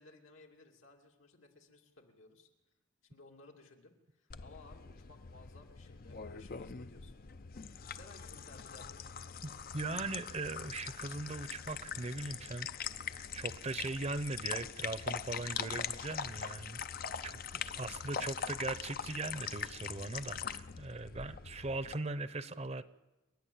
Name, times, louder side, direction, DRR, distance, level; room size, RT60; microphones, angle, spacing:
voice 1, 0.0-2.5 3.0-7.6 7.9-9.0, left 2 dB, 80° left, 1 dB, 2.7 m, -59 dB
sound 1, 4.3-21.9, left 7 dB, 45° left, 0.6 m, -42 dB
voice 2, 9.4-12.7 13.1-16.8 17.2-22.8, right 3 dB, 30° right, 14 dB, 0.7 m, -40 dB
28.5 x 11.0 x 8.7 m, 1.0 s
head